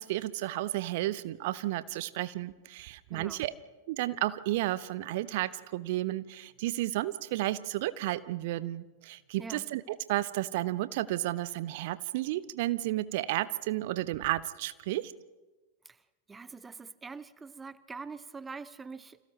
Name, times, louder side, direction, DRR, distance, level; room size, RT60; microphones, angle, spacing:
voice 1, 0.0-3.5 3.9-15.1, right 16 dB, 50° right, 16 dB, 0.7 m, -32 dB
voice 2, 3.1-3.4 9.4-9.7 15.8-16.0 16.3-19.2, right 4 dB, 15° right, 17 dB, 0.6 m, -44 dB
30.0 x 27.0 x 3.2 m, 1.2 s
figure-of-eight pair, 90°, 0 cm